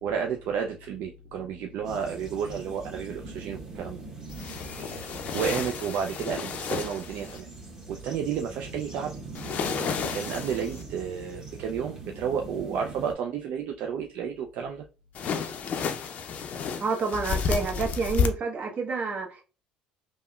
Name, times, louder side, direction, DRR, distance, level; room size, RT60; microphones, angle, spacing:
voice 1, 0.0-4.0 4.9-7.5 7.9-9.1 10.1-14.8, right 7 dB, 65° right, 0.3 m, -31 dB
sound 1, 1.8-13.1, right 3 dB, 20° right, 1.1 m, -42 dB
sound 2, 4.3-7.4 9.3-10.8 15.1-18.3, left 6 dB, 55° left, 0.4 m, -31 dB
voice 2, 16.7-19.4, right 4 dB, 50° right, 1.0 m, -29 dB
3.5 x 2.1 x 2.3 m
supercardioid pair, 75°, 3 cm